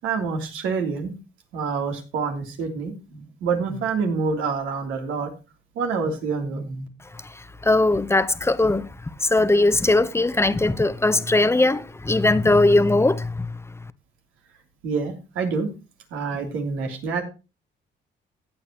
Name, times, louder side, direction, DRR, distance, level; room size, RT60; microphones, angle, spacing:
voice 1, 0.0-1.1 1.5-5.3 5.7-6.9 14.8-15.7 16.1-17.2, right 5 dB, 90° right, 3.2 m, -27 dB
voice 2, 7.6-8.9 9.2-13.5, left 2 dB, 15° left, 0.9 m, -19 dB
16.0 x 8.4 x 3.0 m
cardioid pair, 90°, 20 cm